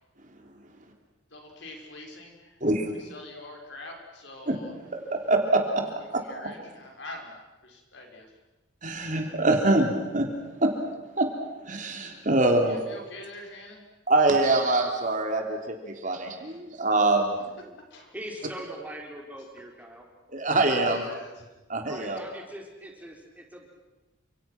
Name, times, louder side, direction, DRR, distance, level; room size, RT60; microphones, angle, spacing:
voice 1, 1.3-2.6 3.0-4.7 6.2-8.3 12.7-13.8 16.5-16.6 17.9-18.2 20.8-21.3, left 2 dB, 65° left, 1 dB, 6.4 m, -44 dB
voice 2, 2.6-2.9 4.5-4.6 4.9-6.2 8.8-10.3 10.6-10.7 11.2-11.3 11.7-12.8 14.1-17.4 20.3-21.0 21.7-22.2, right 2 dB, 40° right, 3 dB, 3.6 m, -24 dB
voice 3, 18.1-20.1 21.9-23.7, right 1 dB, 10° right, 0 dB, 4.4 m, -41 dB
30.0 x 27.0 x 6.2 m, 1.1 s
head